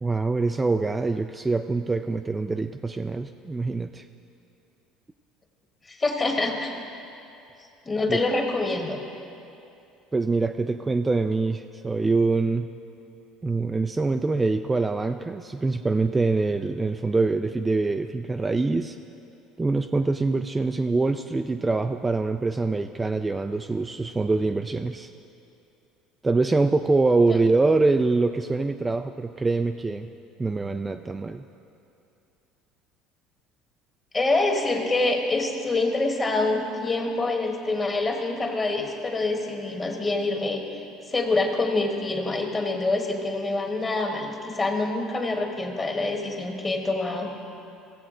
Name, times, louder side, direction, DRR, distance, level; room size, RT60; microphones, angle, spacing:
voice 1, 0.0-4.0 8.1-8.2 10.1-12.7 13.4-19.0 19.6-25.1 26.2-30.1 30.4-31.4, right 3 dB, 15° right, 7 dB, 0.3 m, -24 dB
voice 2, 5.9-6.7 7.8-9.0 34.1-40.6 41.1-47.3, left 2 dB, 25° left, 2 dB, 1.4 m, -26 dB
15.5 x 7.6 x 3.7 m, 2.7 s
supercardioid pair, 95°, 0 cm